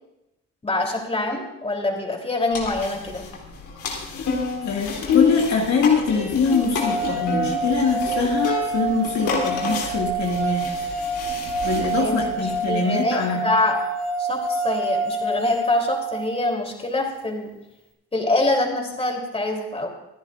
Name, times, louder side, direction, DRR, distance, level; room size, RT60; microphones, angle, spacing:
voice 1, 0.6-3.2 12.0-13.8 14.2-17.5 18.1-19.9, left 2 dB, 20° left, 1 dB, 3.4 m, -25 dB
sound 1, 2.5-12.7, left 5 dB, 85° left, 3.2 m, -29 dB
voice 2, 4.6-10.7 11.6-13.5, left 5 dB, 65° left, -1 dB, 2.2 m, -23 dB
sound 2, 6.5-16.6, right 3 dB, 5° left, 2.2 m, -27 dB
26.0 x 10.5 x 2.5 m, 0.92 s
cardioid pair, 90°, 30 cm